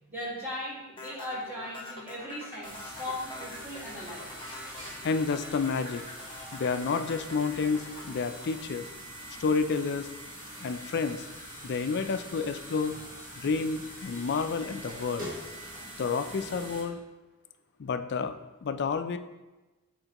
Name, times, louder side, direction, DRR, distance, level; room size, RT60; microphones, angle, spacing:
voice 1, 0.1-4.3, left 1 dB, 10° right, -7 dB, 1.8 m, -38 dB
sound 1, 1.0-9.3, left 2 dB, 25° left, 1.0 m, -45 dB
sound 2, 2.6-16.8, equal, 40° right, 1.4 m, -44 dB
voice 2, 5.0-6.0 6.5-8.8 9.4-10.1 10.6-11.3 11.6-13.0 13.4-15.3 16.0-17.0 17.8-18.4 18.6-19.2, left 5 dB, 55° left, 9 dB, 0.4 m, -30 dB
7.7 x 4.4 x 2.9 m, 1.1 s
head